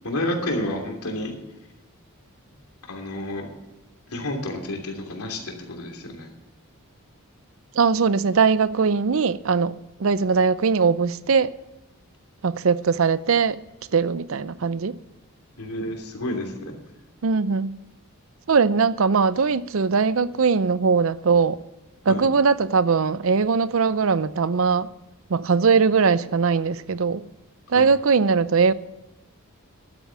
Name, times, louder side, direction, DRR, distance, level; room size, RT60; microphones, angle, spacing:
voice 1, 0.0-1.3 2.9-3.5 4.1-6.3 15.6-16.8 22.1-22.2 27.7-27.9, left 1 dB, 90° left, 3.0 m, -30 dB
voice 2, 7.7-9.7 10.0-11.5 12.4-13.6 13.9-15.0 17.2-17.8 18.5-21.6 22.0-24.9 25.3-27.2 27.7-28.7, right 5 dB, 65° right, 0.5 m, -20 dB
12.0 x 8.9 x 7.5 m
head